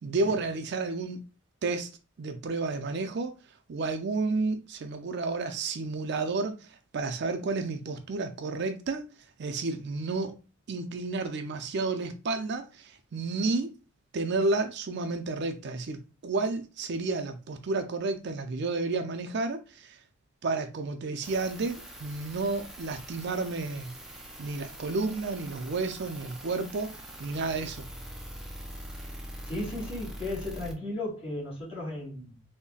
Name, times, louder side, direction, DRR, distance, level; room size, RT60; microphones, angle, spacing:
voice 1, 0.0-1.2 1.6-1.9 2.2-3.4 3.7-9.1 9.4-10.4 10.7-13.7 14.1-20.0 20.4-23.9 24.4-27.9, right 3 dB, 60° right, 0.4 m, -31 dB
sound 1, 21.2-30.7, right 1 dB, ahead, 0.5 m, -43 dB
voice 2, 29.4-32.4, left 1 dB, 30° left, 1.6 m, -35 dB
3.8 x 2.1 x 2.3 m
head